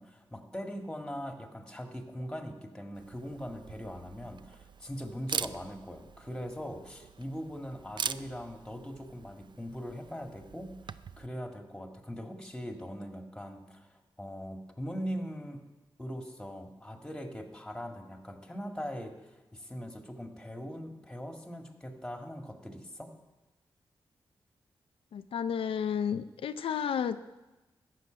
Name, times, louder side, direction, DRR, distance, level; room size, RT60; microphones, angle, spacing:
voice 1, 0.0-15.6 16.0-23.1, equal, 10° left, 4 dB, 1.9 m, -41 dB
Camera, 2.9-11.3, right 6 dB, 55° right, 0.4 m, -42 dB
voice 2, 25.1-27.2, left 8 dB, 85° left, 10 dB, 0.5 m, -32 dB
13.5 x 6.7 x 9.0 m, 1.1 s
cardioid pair, 80°, 9 cm